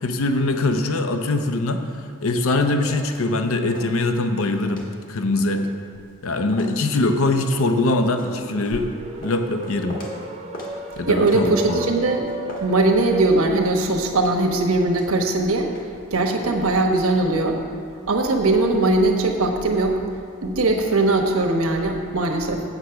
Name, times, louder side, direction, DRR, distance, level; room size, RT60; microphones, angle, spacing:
voice 1, 0.0-1.8 2.2-5.7 6.2-8.9 9.2-10.0 10.9-11.9, left 2 dB, 70° left, 6 dB, 0.7 m, -22 dB
sound 1, 2.4-3.3 3.5-4.4 4.7-10.3 10.5-13.4 13.6-16.2 16.4-16.6, left 1 dB, 40° left, 1.5 m, -40 dB
sound 2, 7.5-13.4, right 2 dB, 30° right, 0.6 m, -36 dB
voice 2, 11.1-12.3 12.6-15.7 16.1-17.6 18.1-20.0 20.4-22.6, right 2 dB, 75° right, 3 dB, 1.1 m, -20 dB
8.2 x 8.0 x 5.8 m, 2.2 s
head